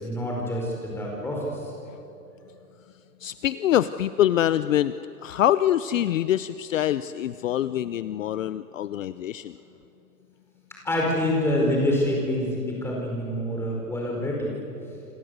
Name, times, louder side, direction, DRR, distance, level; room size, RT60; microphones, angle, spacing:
voice 1, 0.0-1.5 10.8-14.6, left 1 dB, 5° left, -2 dB, 4.8 m, -26 dB
voice 2, 3.2-4.9 5.2-9.5, left 12 dB, 55° left, 14 dB, 0.7 m, -24 dB
28.0 x 26.5 x 8.1 m, 2.8 s
hypercardioid pair, 165°, 47 cm